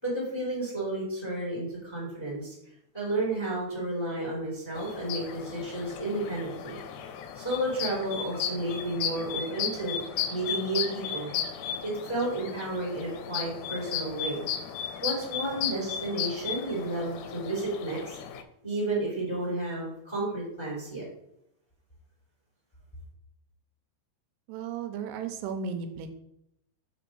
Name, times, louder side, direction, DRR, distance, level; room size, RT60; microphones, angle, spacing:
voice 1, 0.0-2.5 2.9-6.8 7.3-10.0 10.3-11.3 11.8-14.4 15.0-18.2 18.6-21.0, right 2 dB, 10° left, -5 dB, 2.1 m, -32 dB
sound 1, 4.7-18.4, left 8 dB, 90° left, 2.8 m, -35 dB
voice 2, 24.5-26.1, right 6 dB, 85° right, 7 dB, 2.7 m, -34 dB
5.2 x 5.1 x 6.1 m, 0.79 s
omnidirectional pair, 4.8 m